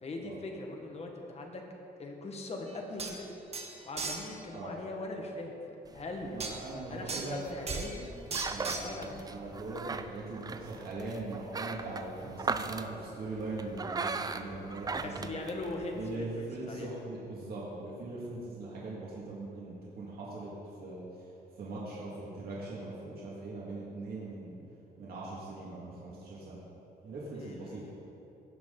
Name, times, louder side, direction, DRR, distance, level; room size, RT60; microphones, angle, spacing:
voice 1, 0.0-1.6 2.0-3.3 3.8-5.5 5.9-6.4 6.9-8.1 8.8-9.3 15.0-16.9 27.3-27.9, left 2 dB, 40° left, 1 dB, 1.4 m, -40 dB
sound 1, 2.7-2.8 3.0-3.2 3.5-4.3 6.4-6.6 7.1-7.3 7.7-8.0 8.3-8.9, right 4 dB, 40° right, 1.1 m, -37 dB
sound 2, 5.9-16.1, right 4 dB, 20° right, 0.4 m, -39 dB
voice 2, 6.3-7.4 8.5-15.4 16.0-20.5 20.8-21.3 21.6-24.6 25.0-26.6 27.0-27.8, right 2 dB, 65° right, -6 dB, 2.0 m, -41 dB
17.0 x 6.1 x 3.9 m, 2.9 s
cardioid pair, 125°, 17 cm